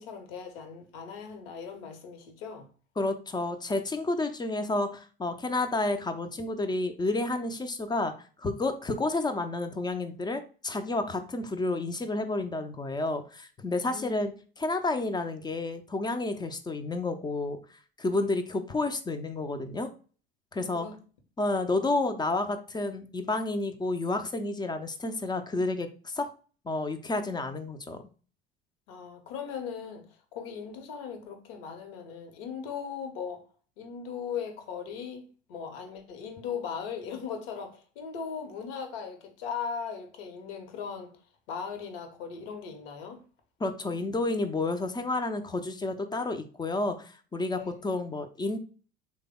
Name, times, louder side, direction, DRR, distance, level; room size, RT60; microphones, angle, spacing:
voice 1, 0.0-2.7 13.9-14.2 20.7-21.0 28.9-30.0 30.3-33.4 33.8-41.1 41.5-43.2 47.5-47.8, left 6 dB, 70° left, 0.9 m, -38 dB
voice 2, 3.0-8.1 8.4-14.3 14.6-17.6 18.0-19.9 20.5-20.9 21.4-26.3 26.6-28.0 43.6-48.6, left 2 dB, 15° left, 0.4 m, -30 dB
3.3 x 2.1 x 3.5 m
hypercardioid pair, 70°, 30 cm